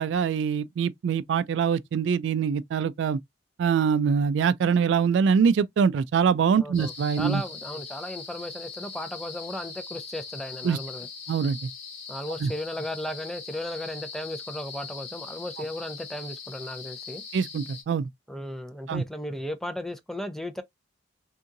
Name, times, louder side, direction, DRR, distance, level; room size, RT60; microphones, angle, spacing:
voice 1, 0.0-3.2 3.6-7.4 10.6-10.8 11.3-11.7 12.4-12.5 17.3-18.1 18.9-19.0, right 6 dB, 75° right, 0.3 m, -24 dB
voice 2, 6.6-11.1 12.1-17.2 18.3-20.6, left 1 dB, ahead, 0.5 m, -35 dB
sound 1, 6.7-17.8, left 5 dB, 40° left, 2.0 m, -41 dB
3.6 x 2.8 x 2.5 m
head